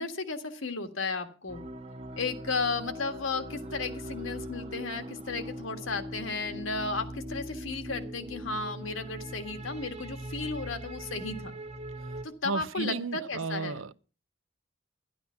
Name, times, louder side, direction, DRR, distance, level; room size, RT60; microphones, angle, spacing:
voice 1, 0.0-1.6 2.1-11.5 12.2-13.8, left 3 dB, 80° left, 1.7 m, -34 dB
sound 1, 1.5-12.2, equal, 35° right, 1.0 m, -41 dB
voice 2, 12.4-13.9, right 4 dB, 85° right, 0.7 m, -33 dB
11.5 x 11.0 x 5.7 m
head